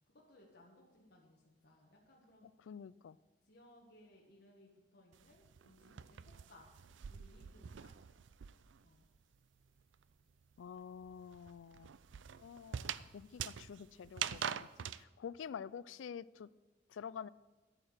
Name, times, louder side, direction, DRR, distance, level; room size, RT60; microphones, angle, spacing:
voice 1, 0.1-2.5 3.4-6.7 7.1-8.0 8.8-9.0, left 1 dB, 55° left, -3 dB, 1.7 m, -63 dB
voice 2, 2.6-3.2 10.6-11.9 12.4-16.5 16.9-17.3, left 7 dB, 90° left, 19 dB, 0.4 m, -48 dB
sound 1, 5.1-8.9 9.2-15.0, right 9 dB, 75° right, 0.4 m, -44 dB
10.5 x 8.9 x 6.5 m, 1.2 s
head